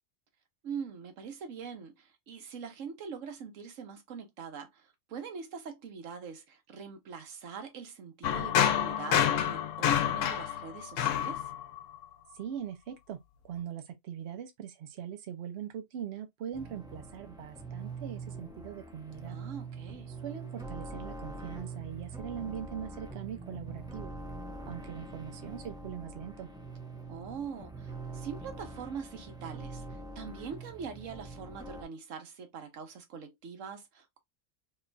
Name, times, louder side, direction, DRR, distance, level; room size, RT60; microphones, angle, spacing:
voice 1, 0.6-11.5 19.3-20.1 27.1-34.2, right 6 dB, 85° right, 1.2 m, -43 dB
sound 1, 8.2-12.0, left 9 dB, 85° left, 1.0 m, -28 dB
voice 2, 12.3-13.2 13.4-19.4 20.2-24.1 24.7-26.5, right 9 dB, 65° right, 0.9 m, -41 dB
sound 2, 16.5-31.8, right 3 dB, 5° right, 0.4 m, -44 dB
3.0 x 2.2 x 3.8 m
omnidirectional pair, 1.3 m